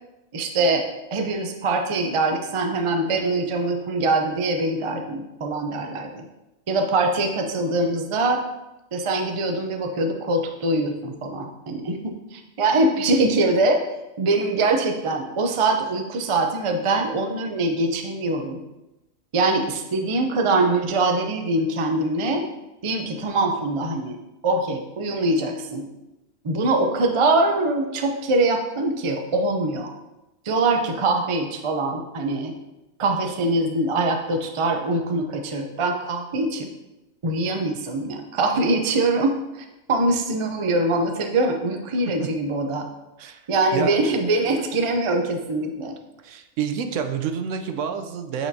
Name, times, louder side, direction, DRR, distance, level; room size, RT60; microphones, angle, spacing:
voice 1, 0.3-6.2 6.7-8.4 8.9-13.8 14.2-18.6 19.3-22.4 22.8-24.2 24.4-25.9 26.4-29.9 30.4-32.5 33.0-36.7 37.2-42.9 43.5-45.9, right 2 dB, 45° right, 3 dB, 0.4 m, -23 dB
voice 2, 46.2-48.5, right 7 dB, 75° right, 7 dB, 0.9 m, -28 dB
8.6 x 4.4 x 2.7 m, 0.99 s
omnidirectional pair, 1.4 m